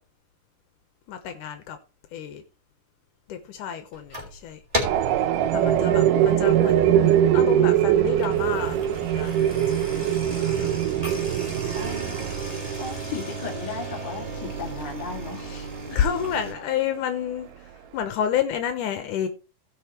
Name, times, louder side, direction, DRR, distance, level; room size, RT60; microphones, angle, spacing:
voice 1, 1.1-1.8 2.1-2.4 3.3-4.6 5.5-10.7 15.9-19.3, left 9 dB, 80° left, 2.5 m, -30 dB
sound 1, 3.9-4.4 4.7-5.2 5.6-5.9 6.5-6.6 6.8-6.9 7.9-16.5, right 1 dB, 10° right, 3.4 m, -35 dB
sound 2, 4.8-16.5, right 10 dB, 90° right, 2.4 m, -23 dB
voice 2, 11.7-15.7, left 6 dB, 35° left, 2.6 m, -36 dB
17.5 x 5.9 x 3.1 m
omnidirectional pair, 3.7 m